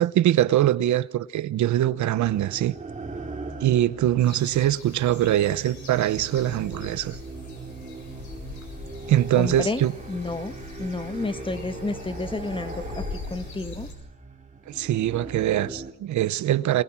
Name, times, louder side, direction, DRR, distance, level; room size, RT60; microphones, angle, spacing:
voice 1, 0.0-2.7 3.6-7.2 9.1-9.9 14.7-16.8, right 12 dB, 70° right, 0.9 m, -23 dB
sound 1, 2.2-15.9, right 3 dB, 25° right, 3.2 m, -40 dB
sound 2, 4.2-13.9, left 3 dB, 70° left, 7.5 m, -41 dB
voice 2, 9.4-9.8 10.1-10.5 10.8-13.0 13.3-13.9, left 3 dB, 15° left, 1.6 m, -30 dB
27.5 x 24.0 x 6.1 m
cardioid pair, 90°, 30 cm